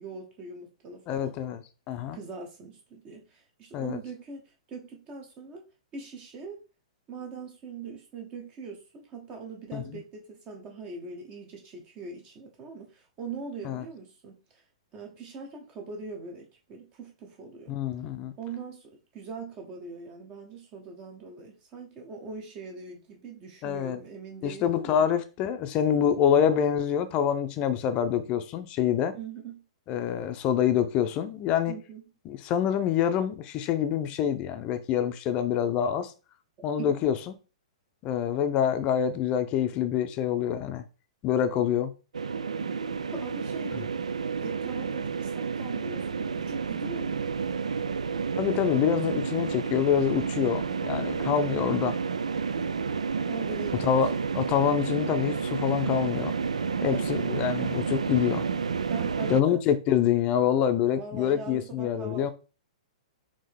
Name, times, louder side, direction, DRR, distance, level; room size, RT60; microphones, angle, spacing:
voice 1, 0.0-1.4 2.1-5.7 5.9-6.6 7.1-14.6 14.9-17.8 18.4-25.1 29.1-29.7 31.7-32.0 36.8-37.0 43.1-43.9 44.4-47.3 51.1-51.7 53.2-54.2 56.9-57.2 58.9-59.6 60.9-62.3, right 4 dB, 30° right, 0.9 m, -41 dB
voice 2, 1.1-1.6 1.9-2.2 3.7-4.0 9.7-10.0 13.6-13.8 17.7-18.3 23.6-24.0 24.4-29.1 29.9-31.8 32.2-36.1 36.6-37.2 38.0-40.8 41.2-41.9 48.4-52.0 53.8-54.1 54.3-56.3 56.8-58.4 59.3-62.3, left 9 dB, 30° left, 0.6 m, -26 dB
sound 1, 42.1-59.4, right 5 dB, 75° right, 0.3 m, -30 dB
4.5 x 2.8 x 3.5 m
figure-of-eight pair, 110°, 4 cm